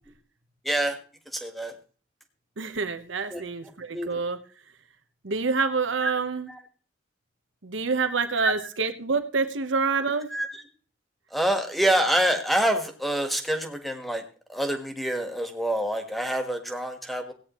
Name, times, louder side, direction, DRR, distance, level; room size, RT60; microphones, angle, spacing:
voice 1, 0.6-1.0 1.3-1.7 3.3-3.4 3.9-4.1 6.0-6.1 6.5-6.6 8.4-8.5 10.3-10.6 11.3-14.2 14.5-17.3, right 1 dB, ahead, 5 dB, 1.5 m, -26 dB
voice 2, 2.6-4.4 5.2-6.5 7.6-10.3, right 4 dB, 85° right, 9 dB, 1.1 m, -27 dB
17.0 x 9.2 x 3.1 m, 0.40 s
head